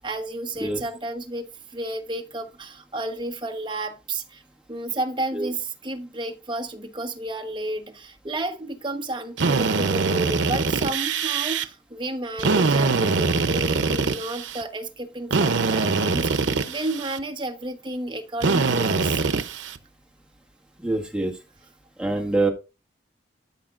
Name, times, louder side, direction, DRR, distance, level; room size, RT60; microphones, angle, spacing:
voice 1, 0.0-4.4 4.7-19.2, right 2 dB, 25° right, 1.1 m, -32 dB
Drill, 9.4-11.6 12.4-14.6 15.3-17.2 18.4-19.8, right 4 dB, 90° right, 0.7 m, -23 dB
voice 2, 20.8-21.3 22.0-22.5, right 2 dB, 5° right, 1.7 m, -24 dB
13.0 x 5.8 x 2.5 m
head